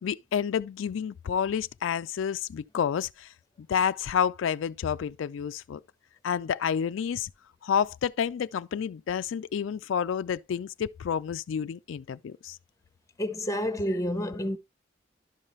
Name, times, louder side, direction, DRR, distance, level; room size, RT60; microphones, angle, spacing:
voice 1, 0.0-3.3 3.6-5.8 6.2-7.3 7.6-12.6, left 7 dB, 85° left, 0.3 m, -29 dB
voice 2, 13.2-14.6, equal, 15° left, 0.8 m, -29 dB
11.5 x 5.6 x 3.1 m
head